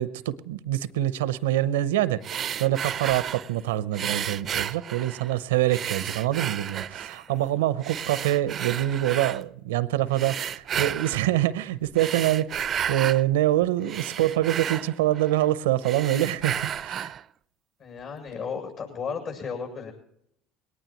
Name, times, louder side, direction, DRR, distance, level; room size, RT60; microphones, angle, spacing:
voice 1, 0.0-12.5 12.9-17.1, right 13 dB, 85° right, 0.7 m, -25 dB
sound 1, 2.2-3.5 3.9-5.3 5.7-7.3 7.8-9.4 10.1-11.3 11.8-13.2 13.6-15.5 15.8-17.2, right 9 dB, 45° right, 0.5 m, -32 dB
voice 2, 17.8-19.9, left 6 dB, 60° left, 7.4 m, -34 dB
21.0 x 18.5 x 3.0 m
hypercardioid pair, 85°, 0 cm